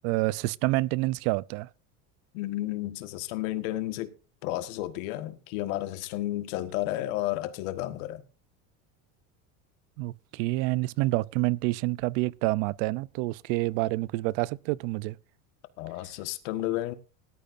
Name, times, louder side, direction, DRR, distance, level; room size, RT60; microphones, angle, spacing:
voice 1, 0.0-1.7 10.0-15.2, right 20 dB, 80° right, 0.7 m, -28 dB
voice 2, 2.3-4.1 4.4-8.2 15.8-16.9, left 15 dB, 90° left, 1.6 m, -32 dB
19.0 x 13.0 x 2.6 m
cardioid pair, 125°, 39 cm